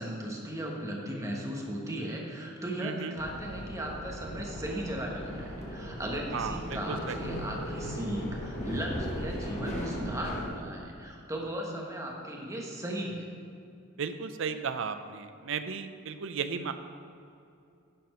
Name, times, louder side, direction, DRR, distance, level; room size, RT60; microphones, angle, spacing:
voice 1, 0.0-13.3, right 1 dB, 15° right, -1 dB, 1.1 m, -36 dB
voice 2, 2.8-3.2 6.3-7.2 14.0-16.7, right 6 dB, 65° right, 10 dB, 0.5 m, -35 dB
sound 1, 3.2-10.5, equal, 35° left, 1.3 m, -37 dB
10.5 x 4.3 x 5.3 m, 2.5 s
head